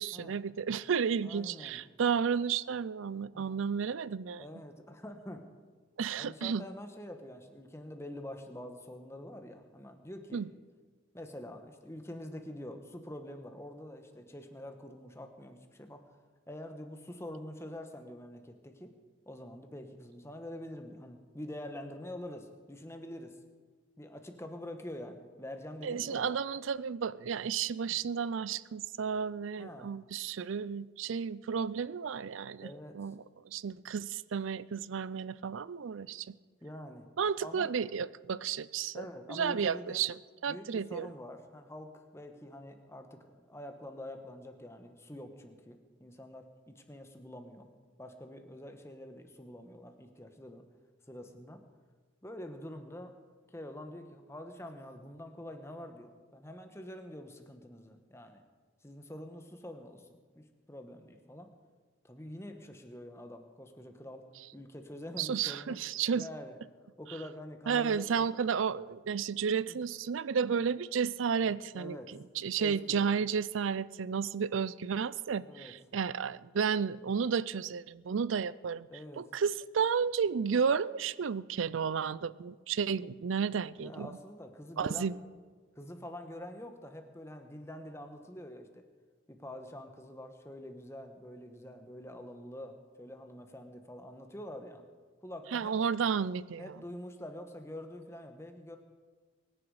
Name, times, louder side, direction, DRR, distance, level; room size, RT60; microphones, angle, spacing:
voice 1, 0.0-4.4 6.0-6.6 10.3-10.5 25.8-32.7 32.9-36.3 37.2-40.1 40.4-41.1 65.2-66.3 67.7-72.0 72.4-78.9 79.2-84.1 84.8-85.2 95.5-96.7, right 6 dB, 80° right, 19 dB, 0.4 m, -32 dB
voice 2, 1.2-1.8 3.3-3.6 4.4-5.4 6.1-10.4 11.1-16.0 16.5-18.9 19.3-23.4 24.0-26.4 27.9-28.0 29.6-29.9 32.6-33.0 36.6-37.1 37.4-37.7 38.9-40.0 40.5-47.7 48.0-50.6 51.1-51.6 52.2-53.1 53.5-58.4 58.8-61.5 62.0-64.2 64.5-65.8 66.1-66.6 67.0-68.3 69.7-69.8 71.7-72.1 72.6-73.1 75.4-75.7 78.9-79.3 83.8-85.1 85.7-88.8 89.3-94.8 95.2-95.8 96.6-98.8, left 1 dB, 15° left, 6 dB, 1.2 m, -46 dB
23.5 x 10.0 x 4.9 m, 1.5 s
head